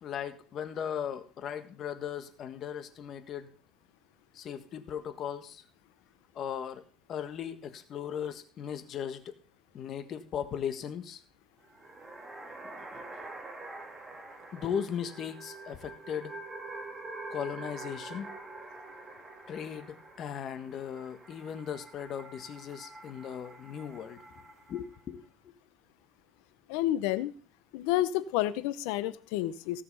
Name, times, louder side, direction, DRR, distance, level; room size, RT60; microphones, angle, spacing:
voice 1, 0.0-3.5 4.3-5.6 6.3-6.8 7.1-9.4 9.7-11.2 12.6-13.0 14.5-16.3 17.3-18.3 19.5-24.2 24.7-25.2, left 8 dB, 45° left, 9 dB, 1.5 m, -37 dB
sound 1, 11.6-25.0, right 2 dB, 20° right, 1.9 m, -46 dB
voice 2, 26.7-27.3 27.7-29.8, left 14 dB, 85° left, 15 dB, 0.8 m, -30 dB
17.0 x 6.0 x 5.6 m, 0.43 s
cardioid pair, 120°, 0 cm